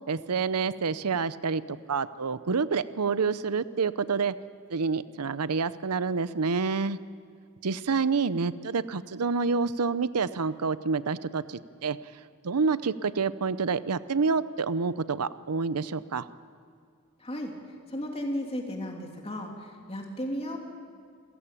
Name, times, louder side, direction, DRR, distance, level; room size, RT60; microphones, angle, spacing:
voice 1, 0.1-1.6 1.9-4.3 4.7-7.0 7.6-12.0 12.4-16.3, right 5 dB, 85° right, 15 dB, 0.7 m, -28 dB
voice 2, 17.2-17.6 17.9-20.6, equal, 25° left, 1 dB, 3.0 m, -34 dB
27.0 x 16.0 x 8.5 m, 2.2 s
head